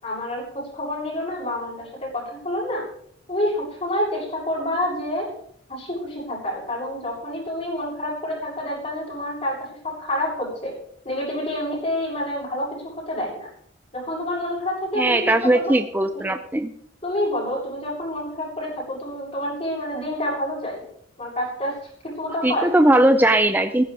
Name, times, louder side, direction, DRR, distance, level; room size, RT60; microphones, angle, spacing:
voice 1, 0.0-2.8 3.3-5.3 5.7-9.6 9.8-10.7 11.0-13.5 13.9-15.2 15.5-15.7 17.0-20.8 21.2-21.8 22.0-22.7, left 1 dB, 35° left, -4 dB, 7.2 m, -28 dB
voice 2, 15.0-16.7 22.4-23.8, right 1 dB, 10° right, 8 dB, 0.5 m, -19 dB
16.5 x 14.5 x 3.5 m, 0.66 s
head